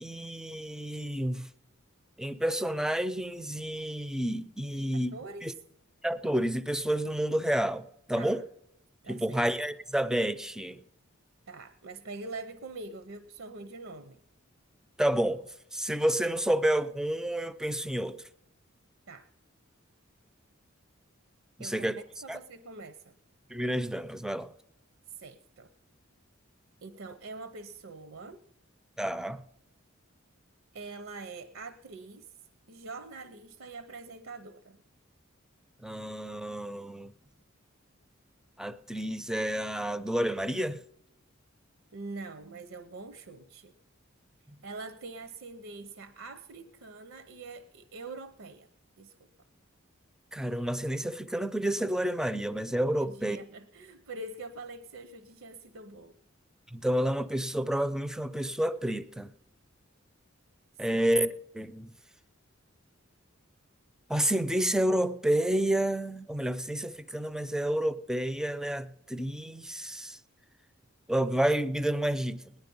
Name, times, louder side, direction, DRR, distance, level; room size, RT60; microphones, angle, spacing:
voice 1, 0.0-1.5 2.2-5.1 5.4-5.5 6.0-8.4 9.1-10.8 15.0-15.4 15.7-18.2 21.6-22.0 22.3-22.4 23.5-24.5 29.0-29.4 35.8-37.1 38.6-40.8 50.3-53.4 56.7-59.3 60.8-61.9 64.1-70.2 71.1-72.5, right 1 dB, 5° right, 0.5 m, -30 dB
voice 2, 5.1-5.5 8.1-8.4 9.0-9.4 11.5-14.2 19.1-19.3 21.6-23.1 25.1-25.7 26.8-28.4 30.7-32.3 32.7-34.8 41.9-43.7 44.6-48.7 49.0-49.2 53.0-56.1 60.9-61.0, right 3 dB, 70° right, 0.7 m, -44 dB
18.5 x 10.5 x 5.4 m
head